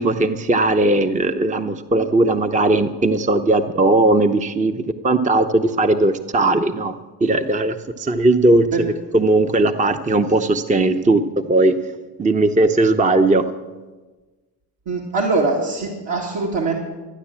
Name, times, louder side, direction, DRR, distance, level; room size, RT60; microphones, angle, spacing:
voice 1, 0.0-6.9 7.2-8.9 9.1-11.2 11.5-11.7 12.2-13.4, right 2 dB, 15° right, 8 dB, 0.8 m, -18 dB
voice 2, 14.9-16.7, right 3 dB, 60° right, -2 dB, 2.4 m, -22 dB
13.0 x 9.6 x 7.4 m, 1.3 s
supercardioid pair, 55°, 50 cm